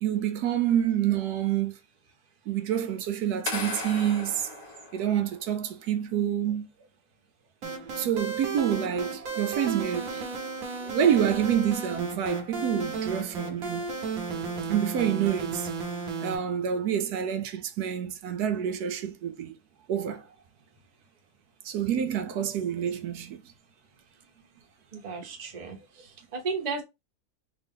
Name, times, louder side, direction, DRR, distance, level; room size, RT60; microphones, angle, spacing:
voice 1, 0.0-1.8 2.5-4.5 4.9-6.7 8.0-10.3 10.8-14.0 14.7-15.7 16.2-19.5 19.9-20.3 21.6-23.4, right 9 dB, 80° right, 1.1 m, -27 dB
sound 1, 3.4-5.5, left 3 dB, 70° left, 1.5 m, -36 dB
sound 2, 7.6-16.3, right 4 dB, 65° right, 1.3 m, -34 dB
voice 2, 24.9-26.8, right 4 dB, 30° right, 0.9 m, -34 dB
3.4 x 2.6 x 3.6 m
omnidirectional pair, 1.7 m